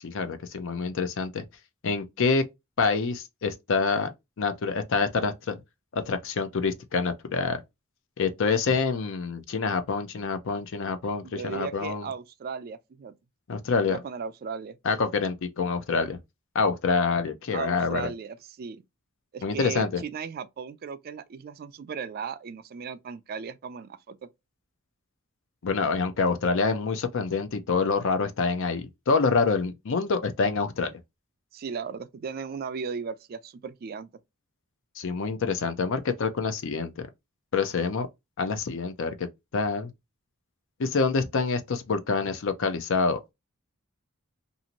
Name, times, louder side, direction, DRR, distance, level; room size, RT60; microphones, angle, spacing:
voice 1, 0.0-1.4 1.8-2.4 2.8-4.1 4.4-5.6 5.9-7.6 8.2-12.1 13.5-14.0 14.8-16.2 16.5-18.1 19.4-20.0 25.6-30.9 35.0-37.1 37.5-38.1 38.4-39.3 39.5-39.9 40.8-43.2, left 4 dB, 60° left, 0.5 m, -26 dB
voice 2, 11.2-13.1 13.8-14.8 17.5-18.8 19.3-24.3 31.5-34.1, right 6 dB, 45° right, 0.3 m, -36 dB
2.7 x 2.5 x 2.8 m
head